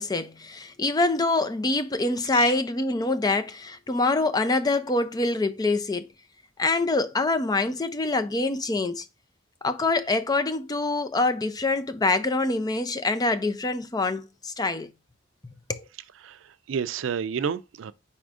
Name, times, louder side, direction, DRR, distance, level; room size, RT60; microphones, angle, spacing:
voice 1, 0.0-6.1 6.6-9.0 9.6-14.9 15.4-15.8, left 2 dB, 20° left, 0.5 m, -25 dB
voice 2, 16.2-17.9, right 7 dB, 85° right, 0.4 m, -30 dB
4.8 x 4.3 x 2.4 m
head